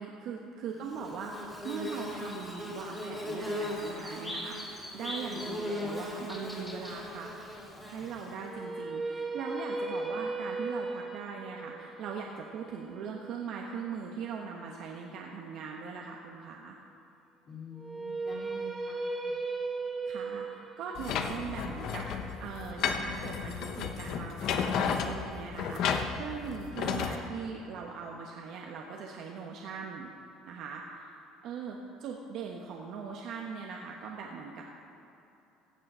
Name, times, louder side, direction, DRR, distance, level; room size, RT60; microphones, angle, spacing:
voice 1, 0.0-7.3 7.8-16.8 20.0-30.1 30.4-31.2 31.4-34.6, right 5 dB, 65° right, 0 dB, 1.1 m, -40 dB
Bird / Buzz, 0.9-8.6, left 1 dB, 15° left, 2.7 m, -38 dB
sound 1, 8.4-14.5 17.8-23.8, right 3 dB, 20° right, 1.2 m, -37 dB
voice 2, 17.5-19.4, left 2 dB, 40° left, -4 dB, 2.8 m, -47 dB
sound 2, 21.0-27.2, left 6 dB, 60° left, 0.9 m, -33 dB
15.5 x 7.7 x 5.5 m, 2.9 s
cardioid pair, 115°, 0 cm